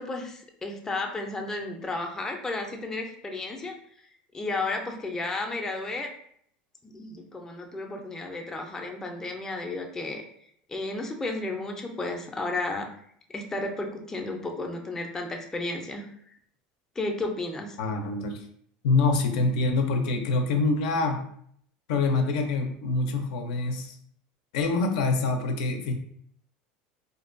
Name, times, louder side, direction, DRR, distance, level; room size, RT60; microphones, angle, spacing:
voice 1, 0.0-3.7 4.3-6.1 6.8-10.2 10.7-12.9 13.3-16.1 17.0-17.8, left 2 dB, 10° left, 2 dB, 0.3 m, -33 dB
voice 2, 17.8-18.4 18.8-21.2 21.9-24.0 24.5-25.9, left 3 dB, 90° left, 5 dB, 0.4 m, -25 dB
2.5 x 2.2 x 2.4 m, 0.64 s
supercardioid pair, 135°, 4 cm